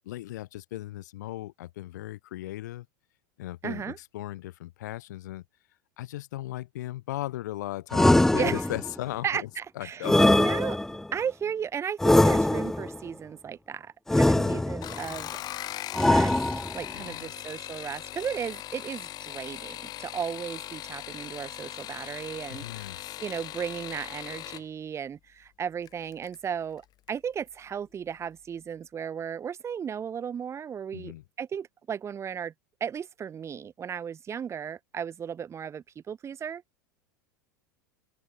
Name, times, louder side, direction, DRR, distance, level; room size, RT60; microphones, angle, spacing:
voice 1, 0.0-2.9 3.4-5.4 6.0-9.5 9.8-10.3 14.3-14.6 16.9-17.3 22.5-23.2 30.9-31.2, left 15 dB, 65° left, 2.4 m, -37 dB
voice 2, 3.6-4.0 8.4-8.6 9.2-10.1 10.4-10.8 11.1-15.4 15.9-16.3 16.7-32.5 32.8-36.6, right 8 dB, 30° right, 3.5 m, -35 dB
sound 1, 7.9-9.0 10.0-11.1 12.0-13.0 14.1-15.0 15.9-16.9, left 1 dB, 5° left, 0.3 m, -22 dB
sound 2, 14.7-24.7 25.9-26.4 26.8-27.2 27.5-27.6, left 13 dB, 40° left, 7.0 m, -40 dB
open air
hypercardioid pair, 85°, 10 cm